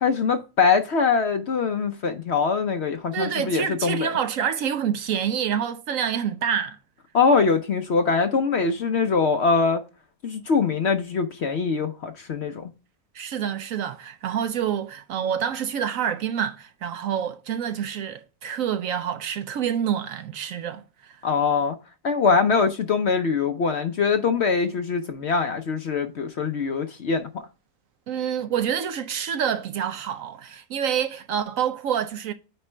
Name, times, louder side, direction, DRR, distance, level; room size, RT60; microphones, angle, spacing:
voice 1, 0.0-4.1 7.1-9.8 10.2-12.7 21.2-21.8 22.0-27.4, left 5 dB, 55° left, 0.8 m, -23 dB
voice 2, 3.1-6.8 13.1-21.2 28.1-32.3, right 8 dB, 65° right, 0.9 m, -27 dB
8.9 x 4.2 x 3.2 m
omnidirectional pair, 1.7 m